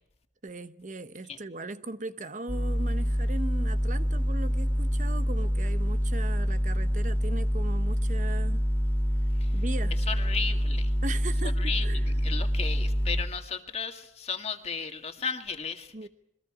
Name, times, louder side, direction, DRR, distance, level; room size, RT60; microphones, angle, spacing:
voice 1, 0.4-8.6 9.5-10.0 11.0-12.1 15.9-16.1, right 2 dB, 45° right, 0.9 m, -38 dB
sound 1, 2.5-13.2, equal, 10° left, 1.3 m, -26 dB
voice 2, 10.1-10.9 11.6-16.1, left 5 dB, 35° left, 1.9 m, -35 dB
28.0 x 22.5 x 5.0 m
head